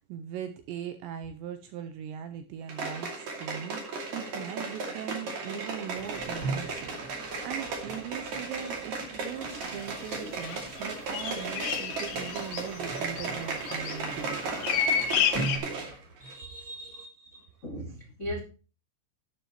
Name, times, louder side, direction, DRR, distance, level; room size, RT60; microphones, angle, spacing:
voice 1, 0.0-7.0 7.4-14.8 16.4-17.3, right 9 dB, 85° right, 2.6 m, -40 dB
sound 1, 2.7-16.0 16.3-16.4, right 4 dB, 45° right, 3.1 m, -36 dB
sound 2, 5.8-16.4, right 3 dB, 20° left, 3.3 m, -42 dB
sound 3, 9.6-9.7 10.4-10.6 10.9-15.6, left 8 dB, 70° left, 2.6 m, -30 dB
voice 2, 16.2-18.4, equal, 50° left, 0.8 m, -39 dB
12.0 x 9.8 x 3.0 m
omnidirectional pair, 5.8 m